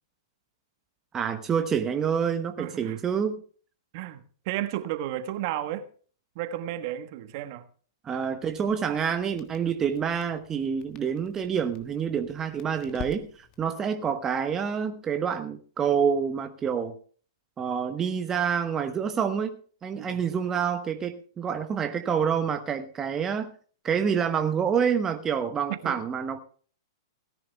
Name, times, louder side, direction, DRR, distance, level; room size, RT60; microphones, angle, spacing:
voice 1, 1.1-3.4 8.0-17.0 17.6-23.5 23.8-26.4, right 7 dB, 20° right, 1.1 m, -27 dB
voice 2, 2.6-3.0 3.9-5.9 6.3-7.7 20.0-20.1 25.8-26.0, right 13 dB, 50° right, 1.3 m, -33 dB
Crackle, 8.4-13.7, left 7 dB, 35° left, 1.5 m, -47 dB
17.5 x 10.5 x 3.4 m
hypercardioid pair, 120°, 2 cm